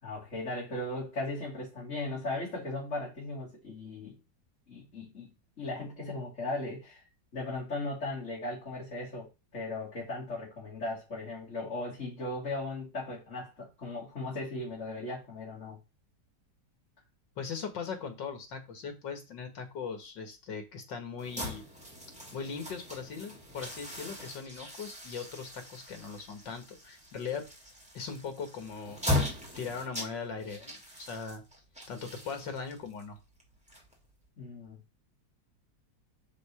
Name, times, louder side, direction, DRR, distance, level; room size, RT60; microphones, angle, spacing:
voice 1, 0.0-4.1 4.7-5.3 5.6-7.0 7.3-15.8 34.4-34.8, left 2 dB, 40° left, 3.5 m, -37 dB
voice 2, 17.4-21.6 22.3-27.5 27.9-29.0 29.6-31.4 31.9-33.2, left 5 dB, 75° left, 2.3 m, -39 dB
sound 1, 21.2-34.3, left 1 dB, 5° right, 2.2 m, -39 dB
6.6 x 5.4 x 4.9 m
omnidirectional pair, 2.0 m